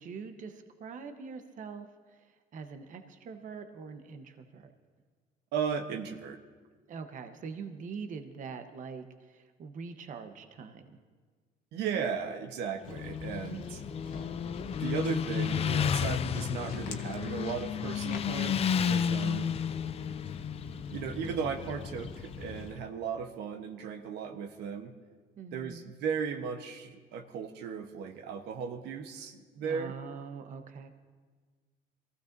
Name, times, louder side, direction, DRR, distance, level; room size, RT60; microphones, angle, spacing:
voice 1, 0.0-2.2 2.5-4.7 6.9-10.9 25.4-25.9 29.6-30.9, right 5 dB, 50° right, 7 dB, 1.0 m, -43 dB
voice 2, 5.5-6.4 11.7-13.8 14.8-19.6 20.9-24.9 25.5-29.9, right 6 dB, 85° right, 5 dB, 1.0 m, -36 dB
Walk footsteps, 12.8-22.7, left 4 dB, 55° left, 1.2 m, -45 dB
Motorcycle, 12.8-22.6, left 8 dB, 35° left, 0.4 m, -32 dB
23.0 x 15.0 x 2.6 m, 1.5 s
cardioid pair, 110°, 17 cm